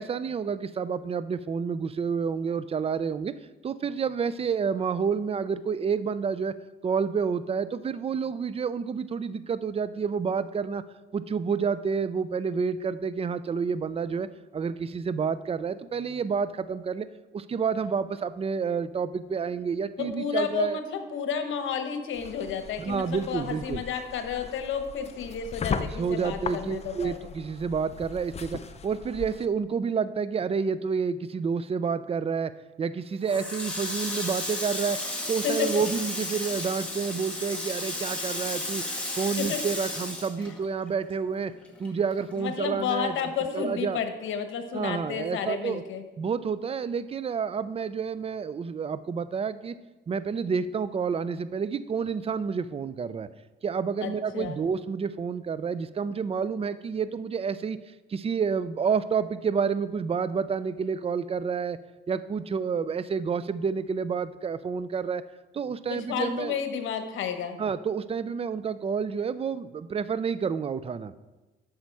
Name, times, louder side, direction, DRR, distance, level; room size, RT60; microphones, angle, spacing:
voice 1, 0.0-3.3 3.6-6.6 6.8-10.8 11.1-17.1 17.3-20.8 22.8-23.8 25.8-32.5 32.8-35.0 35.3-38.8 39.2-41.5 41.8-43.2 43.5-44.0 44.7-45.8 46.2-49.7 50.1-53.3 53.6-57.8 58.1-61.8 62.1-65.2 65.5-66.6 67.6-71.1, right 6 dB, 30° right, 14 dB, 0.4 m, -29 dB
voice 2, 20.0-27.2 35.4-35.8 39.4-39.6 42.4-46.0 54.0-54.6 65.9-67.6, left 7 dB, 75° left, 7 dB, 1.1 m, -31 dB
sound 1, 22.1-29.5, left 5 dB, 35° left, 0.5 m, -38 dB
Water tap faucet, 33.2-41.1 41.4-42.7, left 1 dB, 5° left, 2.0 m, -33 dB
8.3 x 6.4 x 4.7 m, 1.1 s
cardioid pair, 90°, 20 cm